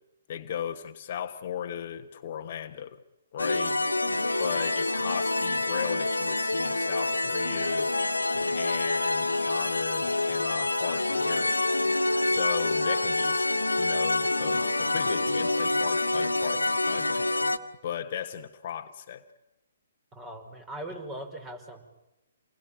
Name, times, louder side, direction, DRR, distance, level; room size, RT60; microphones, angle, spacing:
voice 1, 0.3-3.0 3.3-3.8 4.4-7.9 8.3-11.6 12.2-13.5 13.8-17.3 17.8-19.2, left 9 dB, 45° left, 8 dB, 1.3 m, -36 dB
sound 1, 3.4-17.6, left 2 dB, 80° left, 1.7 m, -27 dB
voice 2, 20.1-21.8, right 1 dB, 15° right, 6 dB, 5.1 m, -40 dB
28.5 x 21.0 x 9.0 m, 0.94 s
figure-of-eight pair, 125°, 0 cm